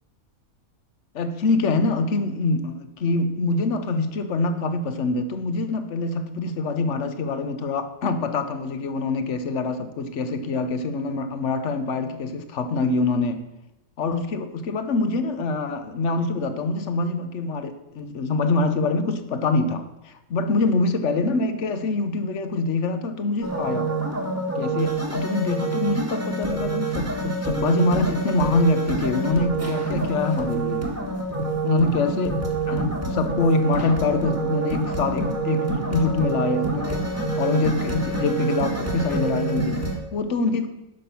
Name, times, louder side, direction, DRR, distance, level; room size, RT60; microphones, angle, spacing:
voice 1, 1.1-13.4 14.0-23.9 24.6-30.9 31.6-37.1 37.4-40.7, left 3 dB, 55° left, 10 dB, 1.1 m, -25 dB
sound 1, 23.4-40.0, right 3 dB, 10° right, 1.3 m, -27 dB
10.5 x 6.0 x 6.9 m, 0.93 s
omnidirectional pair, 1.6 m